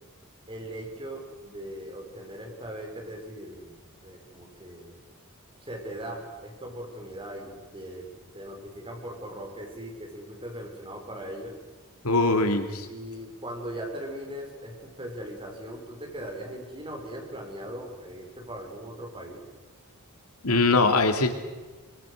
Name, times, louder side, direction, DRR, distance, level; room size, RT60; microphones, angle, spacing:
voice 1, 0.5-5.0 5.6-8.1 8.3-11.6 12.8-19.4, right 1 dB, 25° right, 1 dB, 5.6 m, -39 dB
voice 2, 12.0-12.9 20.4-21.3, left 3 dB, 90° left, 6 dB, 2.6 m, -22 dB
25.5 x 25.0 x 6.5 m, 1.3 s
head